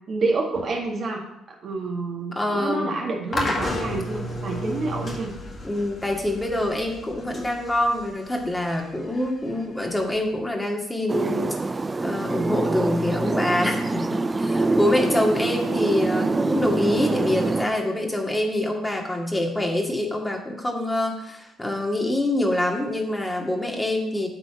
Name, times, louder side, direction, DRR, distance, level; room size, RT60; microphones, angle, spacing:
voice 1, 0.1-1.2 1.6-5.3, right 3 dB, 55° right, 0 dB, 1.8 m, -28 dB
voice 2, 2.4-3.0 5.6-11.5 12.0-24.3, left 1 dB, 15° left, 1 dB, 2.1 m, -25 dB
sound 1, 3.3-10.4, left 1 dB, 40° left, 2.0 m, -33 dB
sound 2, 11.1-17.7, right 3 dB, 25° right, 0.4 m, -25 dB
8.7 x 4.0 x 7.1 m, 0.82 s
hypercardioid pair, 55°, 0 cm